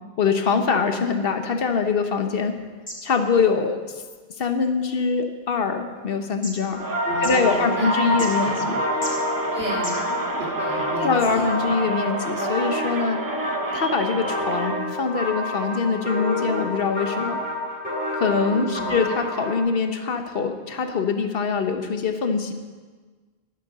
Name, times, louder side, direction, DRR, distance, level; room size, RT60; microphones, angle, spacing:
voice 1, 0.2-2.6 3.0-4.0 4.4-6.8 7.2-8.8 9.6-9.8 11.0-13.2 13.7-17.4 18.1-22.5, left 5 dB, 65° left, 6 dB, 1.2 m, -23 dB
sound 1, 1.2-10.4, equal, 10° left, 2.9 m, -43 dB
sound 2, 6.7-19.6, left 1 dB, 10° right, 2.6 m, -28 dB
Crowd, 6.8-14.9, right 3 dB, 30° right, 0.4 m, -30 dB
voice 2, 7.0-7.9 8.4-8.9 9.5-11.7 18.5-18.9, right 1 dB, 75° right, -4 dB, 3.8 m, -34 dB
11.5 x 9.1 x 6.5 m, 1.4 s
omnidirectional pair, 1.1 m